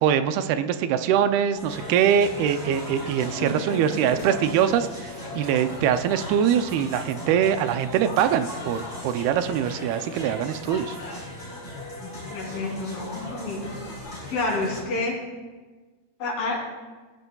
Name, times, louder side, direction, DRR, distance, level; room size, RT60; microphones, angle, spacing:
voice 1, 0.0-11.0, right 9 dB, 85° right, 9 dB, 2.5 m, -23 dB
sound 1, 1.5-14.8, left 1 dB, 10° left, 3.6 m, -37 dB
voice 2, 3.3-4.4 12.0-13.7 14.3-15.1 16.2-16.6, left 2 dB, 65° left, -3 dB, 4.8 m, -30 dB
18.0 x 15.0 x 2.3 m, 1.3 s
omnidirectional pair, 4.4 m